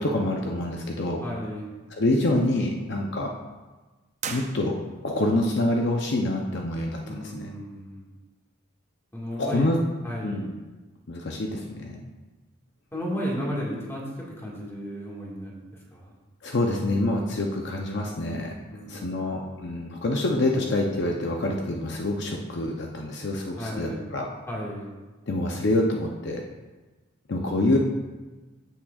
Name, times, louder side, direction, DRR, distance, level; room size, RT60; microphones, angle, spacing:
voice 1, 0.0-1.2 2.0-3.3 4.3-4.7 5.0-7.5 9.3-9.8 10.2-10.5 11.1-12.0 16.4-18.5 18.9-24.3 25.3-26.4 27.3-27.8, left 1 dB, 55° left, 1 dB, 0.6 m, -26 dB
voice 2, 1.2-1.7 7.1-8.0 9.1-9.8 10.0-10.4 12.9-15.6 15.9-16.1 18.7-19.5 23.6-24.0 24.5-24.9, equal, 10° left, -4 dB, 1.7 m, -34 dB
sound 1, 4.2-5.2, right 6 dB, 35° right, 0.5 m, -37 dB
14.5 x 6.0 x 2.4 m, 1.2 s
head